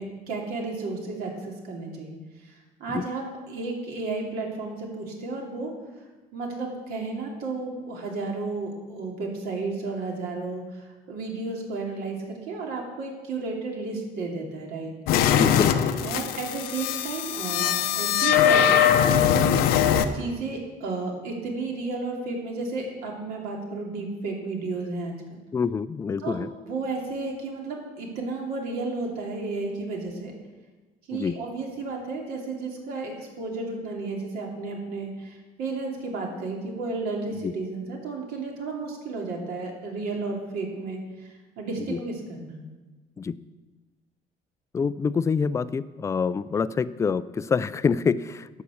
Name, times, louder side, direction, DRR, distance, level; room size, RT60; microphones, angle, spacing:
voice 1, 0.0-5.7 6.3-12.2 12.5-14.9 16.0-19.9 20.1-25.4 26.2-26.4 26.6-30.3 31.1-42.6, right 3 dB, 75° right, 0 dB, 2.9 m, -33 dB
sound 1, 15.1-20.1, left 9 dB, 85° left, 0.8 m, -21 dB
voice 2, 15.3-15.9 25.5-26.5 31.1-31.4 37.4-37.5 41.9-42.0 43.2-43.4 44.7-48.6, left 5 dB, 20° left, 15 dB, 0.3 m, -26 dB
11.5 x 7.1 x 7.0 m, 1.2 s
cardioid pair, 145°, 16 cm